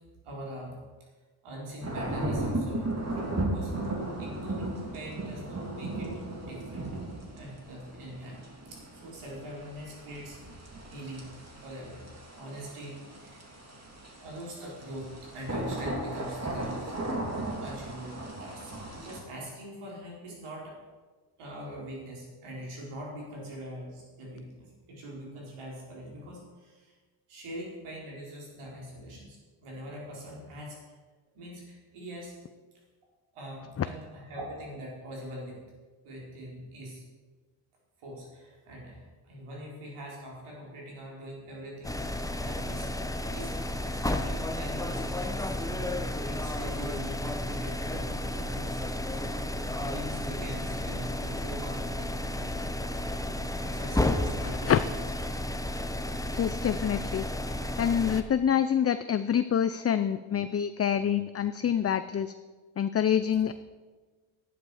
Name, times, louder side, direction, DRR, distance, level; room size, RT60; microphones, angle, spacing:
voice 1, 0.2-0.8 1.4-6.1 6.4-7.0 7.3-8.4 8.7-10.4 10.9-11.3 11.6-13.5 14.2-17.1 17.6-20.8 21.4-27.0 27.3-30.8 31.3-32.3 33.3-35.6 36.0-37.0 38.0-43.5 43.8-49.2 49.8-52.7 53.4-55.1, equal, 80° right, -3 dB, 4.5 m, -43 dB
sound 1, 1.8-19.2, right 1 dB, 30° right, 2.9 m, -36 dB
sound 2, 41.8-58.2, left 1 dB, 5° left, 0.9 m, -32 dB
voice 2, 54.4-54.8 56.3-57.2 57.8-62.3 62.8-63.5, left 9 dB, 30° left, 12 dB, 0.5 m, -26 dB
11.5 x 10.0 x 4.9 m, 1.3 s
supercardioid pair, 60°, 50 cm